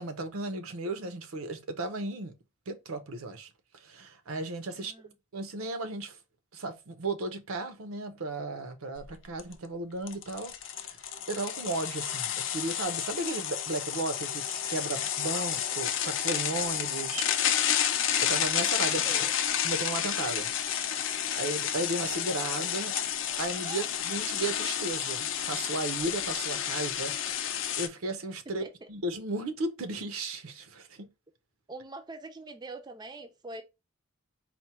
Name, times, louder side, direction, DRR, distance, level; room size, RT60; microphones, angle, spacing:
voice 1, 0.0-2.3 2.7-4.9 5.3-6.2 6.5-10.9 11.3-17.3 18.2-19.0 19.6-20.5 21.3-23.0 23.4-28.6 28.9-31.1, right 2 dB, 85° right, 0.6 m, -35 dB
voice 2, 4.7-5.1 18.8-19.3 23.6-23.9 28.6-28.9 31.7-33.6, right 2 dB, 20° right, 0.4 m, -44 dB
sound 1, 9.0-9.1 9.4-9.5 10.1-27.9, left 10 dB, 60° left, 0.5 m, -30 dB
4.3 x 2.1 x 4.2 m
head